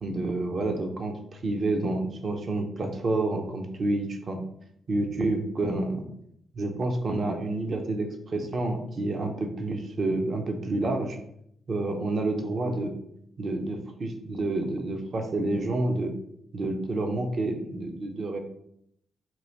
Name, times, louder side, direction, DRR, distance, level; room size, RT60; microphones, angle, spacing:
voice 1, 0.0-4.4 4.9-6.1 6.5-11.2 11.7-12.9 13.4-16.1 16.5-18.4, right 2 dB, 50° right, 4 dB, 0.7 m, -29 dB
4.6 x 2.7 x 4.0 m, 0.73 s
hypercardioid pair, 40°, 0 cm